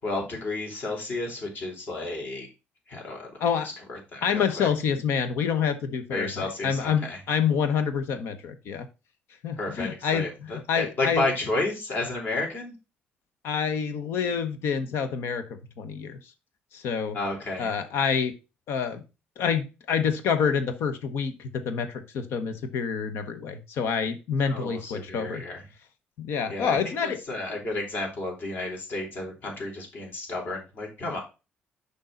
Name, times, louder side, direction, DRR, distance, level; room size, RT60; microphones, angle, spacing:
voice 1, 0.0-2.5 2.9-4.7 6.1-7.2 9.6-12.7 17.1-17.7 24.5-25.7 26.5-31.2, left 2 dB, 50° left, 0 dB, 4.0 m, -32 dB
voice 2, 4.2-8.9 9.4-10.3 10.7-11.2 13.4-15.4 15.8-16.2 16.7-17.2 17.6-18.3 18.7-19.0 19.4-25.4 26.2-27.2, left 6 dB, 75° left, 10 dB, 1.0 m, -27 dB
6.6 x 5.6 x 3.9 m, 0.28 s
cardioid pair, 125°, 4 cm